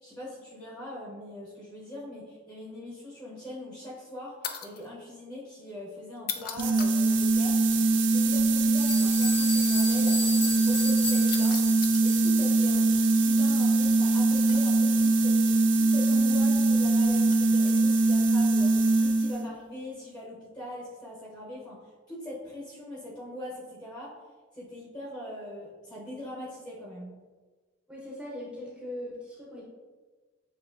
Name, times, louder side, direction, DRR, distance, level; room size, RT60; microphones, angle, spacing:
voice 1, 0.0-11.6 12.0-24.1 24.5-27.1, left 1 dB, 20° left, -6 dB, 0.9 m, -42 dB
sound 1, 4.4-4.9 6.2-7.1 9.0-9.1 11.3-12.1 14.5-14.9 17.3-17.5 18.4-18.7, left 8 dB, 45° left, 0.3 m, -38 dB
sound 2, 6.6-19.5, right 2 dB, 65° right, 0.4 m, -22 dB
sound 3, 8.3-8.4 8.8-12.5, left 4 dB, 80° left, 1.3 m, -35 dB
voice 2, 27.9-29.7, left 1 dB, 5° right, -6 dB, 0.8 m, -40 dB
6.7 x 2.9 x 2.6 m, 1.4 s
head